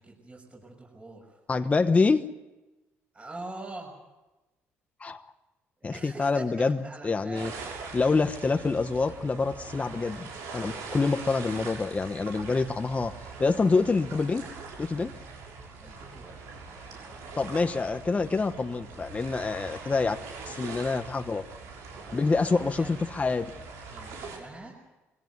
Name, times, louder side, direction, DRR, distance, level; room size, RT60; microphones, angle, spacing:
voice 1, 0.0-1.3 1.7-1.8 3.1-3.9 5.8-7.7 15.8-16.4 16.6-17.3 21.9-23.0 23.4-23.5 23.9-24.7, right 2 dB, 25° right, -1 dB, 6.3 m, -45 dB
voice 2, 1.5-2.2 5.0-5.2 5.8-7.5 7.9-10.3 10.5-13.1 13.4-14.4 14.8-15.1 17.4-20.2 20.5-21.4 22.1-23.5, left 4 dB, 25° left, 7 dB, 1.1 m, -26 dB
sound 1, 7.3-24.4, right 4 dB, 85° right, 6.4 m, -42 dB
22.5 x 17.0 x 9.5 m, 1.1 s
cardioid pair, 80°, 5 cm